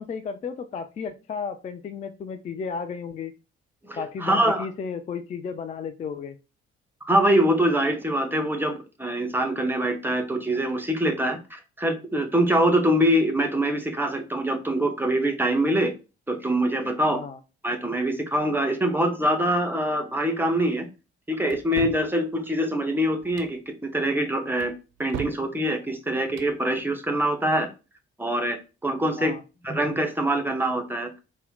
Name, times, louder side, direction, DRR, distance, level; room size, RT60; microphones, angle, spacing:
voice 1, 0.0-3.3 4.0-6.4 17.1-17.4 29.2-29.4, left 6 dB, 25° left, 9 dB, 0.3 m, -33 dB
voice 2, 3.8-4.7 7.0-15.9 16.3-17.2 17.6-20.9 21.3-24.7 25.0-27.7 28.2-28.6 28.8-29.4 29.6-31.1, right 1 dB, 5° right, 5 dB, 0.7 m, -24 dB
sound 1, 21.5-22.1 23.2-23.6 24.6-25.5 26.2-26.6, right 10 dB, 55° right, 0.5 m, -37 dB
4.1 x 2.2 x 3.8 m, 0.30 s
figure-of-eight pair, 40°, 32 cm